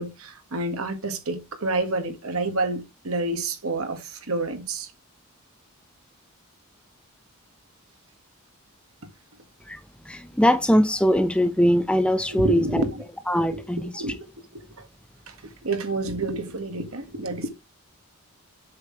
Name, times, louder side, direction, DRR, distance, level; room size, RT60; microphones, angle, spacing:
voice 1, 0.0-4.9 12.4-13.0 13.4-14.2 14.5-14.9 15.3-15.4 15.6-17.5, right 2 dB, 75° right, 1.6 m, -29 dB
voice 2, 9.7-12.8 13.3-14.0, equal, 5° left, 0.6 m, -22 dB
7.7 x 5.7 x 3.2 m
head